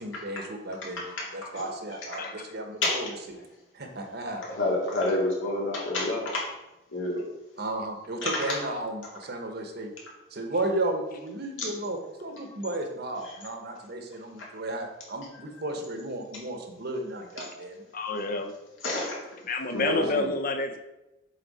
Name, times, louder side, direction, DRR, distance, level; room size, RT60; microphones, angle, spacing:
voice 1, 0.0-3.4 3.7-4.4 7.6-9.9 10.3-17.8 20.2-20.3, right 2 dB, 55° right, 4 dB, 1.0 m, -34 dB
voice 2, 2.2-2.5 4.3-4.7 8.6-8.9 10.5-10.6 17.9-18.5 19.4-20.8, left 2 dB, 45° left, 7 dB, 0.6 m, -30 dB
voice 3, 4.6-6.4 6.9-7.2 8.2-8.3 13.2-13.3 15.3-15.4 18.8-19.2 19.7-20.1, left 2 dB, 75° left, -4 dB, 2.3 m, -28 dB
7.3 x 4.0 x 4.1 m, 0.98 s
head